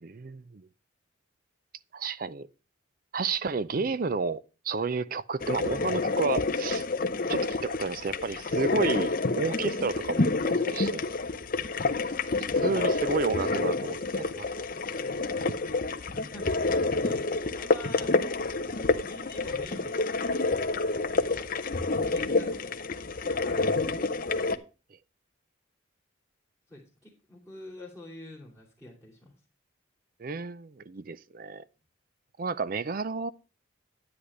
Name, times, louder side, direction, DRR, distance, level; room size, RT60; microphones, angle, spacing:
voice 1, 0.0-0.7 1.9-2.5 3.1-6.9 7.3-10.3 10.7-11.1 12.6-14.5 30.2-31.6 32.4-33.3, right 4 dB, 45° right, 0.5 m, -31 dB
sound 1, 5.4-24.6, left 3 dB, 45° left, 0.7 m, -28 dB
voice 2, 10.3-10.7 12.5-12.9 16.1-18.1 18.8-20.0 21.0-21.5 22.0-22.9 23.2-24.3 26.7-29.3, left 1 dB, 5° right, 2.9 m, -47 dB
10.5 x 9.8 x 3.2 m
head